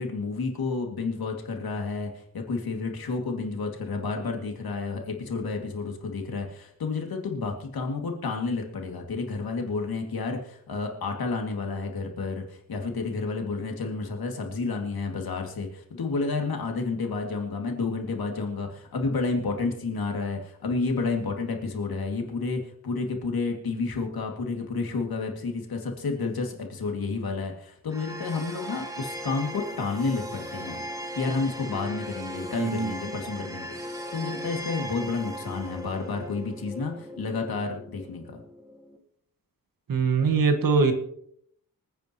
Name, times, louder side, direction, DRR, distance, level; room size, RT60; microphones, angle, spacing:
voice 1, 0.0-30.8 31.1-38.4, left 4 dB, 90° left, 2 dB, 2.4 m, -30 dB
sound 1, 27.9-39.0, equal, 10° right, 1.3 m, -38 dB
voice 2, 32.6-32.9 39.9-40.9, right 4 dB, 70° right, 6 dB, 1.7 m, -22 dB
26.0 x 9.3 x 3.0 m, 0.69 s
wide cardioid pair, 175°, 35 cm